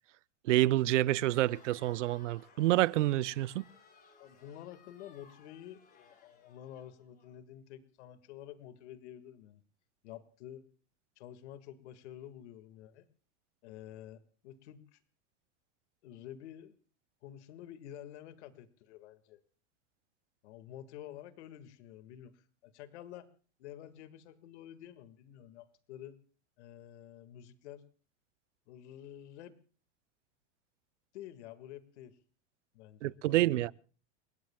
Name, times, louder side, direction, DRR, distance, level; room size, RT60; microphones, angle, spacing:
voice 1, 0.4-3.6 33.0-33.7, right 16 dB, 85° right, 0.7 m, -28 dB
Crowd, 1.1-7.3, left 4 dB, 25° left, 7.3 m, -61 dB
voice 2, 4.2-9.6 10.0-10.6 11.2-13.0 13.6-15.0 16.0-16.7 17.2-19.4 20.4-23.3 23.6-26.2 26.6-27.9 28.7-29.5 31.1-32.2 32.7-33.7, left 11 dB, 70° left, 1.9 m, -50 dB
30.0 x 17.0 x 2.3 m
supercardioid pair, 135°, 35 cm